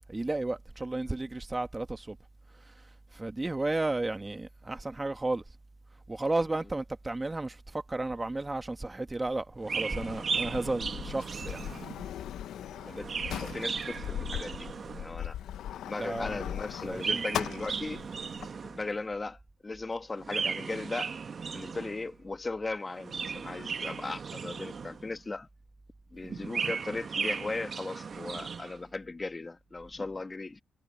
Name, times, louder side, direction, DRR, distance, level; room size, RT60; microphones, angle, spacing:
voice 1, 0.0-2.2 2.7-2.8 3.1-5.4 6.1-11.6 16.0-16.5 16.8-17.2, right 2 dB, 15° right, 1.8 m, -33 dB
Chirp tweet, 9.6-12.1 12.8-15.2 16.8-19.0 20.2-22.1 22.9-25.2 26.2-28.8, right 5 dB, 45° right, 1.4 m, -36 dB
Sliding door, 9.9-18.5, left 10 dB, 75° left, 0.8 m, -39 dB
voice 2, 12.8-14.7 14.9-15.4 15.7-18.0 18.6-21.1 21.5-25.5 26.1-30.6, left 3 dB, 25° left, 1.2 m, -37 dB
cardioid pair, 90°, 0 cm